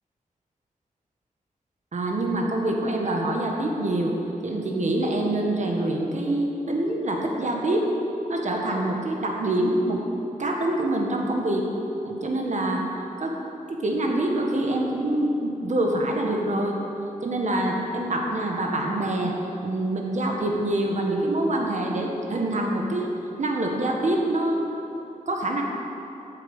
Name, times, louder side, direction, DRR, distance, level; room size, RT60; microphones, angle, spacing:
voice 1, 1.9-4.1 4.4-7.9 8.3-10.0 10.4-11.7 12.0-12.8 13.2-13.4 13.7-16.8 17.2-19.3 19.6-24.6 25.3-25.6, right 1 dB, 55° right, 0 dB, 1.5 m, -25 dB
8.7 x 7.6 x 7.2 m, 2.9 s
wide cardioid pair, 100°, 14 cm